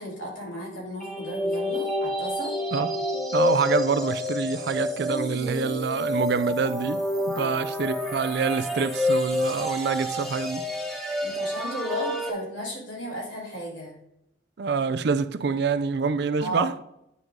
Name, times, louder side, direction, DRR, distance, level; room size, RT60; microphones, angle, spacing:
voice 1, 0.0-2.6 7.3-7.6 11.2-13.9 16.4-16.8, equal, 80° left, 3.2 m, -35 dB
sound 1, 1.0-12.3, left 1 dB, ahead, 0.9 m, -28 dB
voice 2, 3.3-10.7 14.6-16.8, right 5 dB, 60° right, 0.4 m, -26 dB
9.6 x 3.9 x 4.6 m
head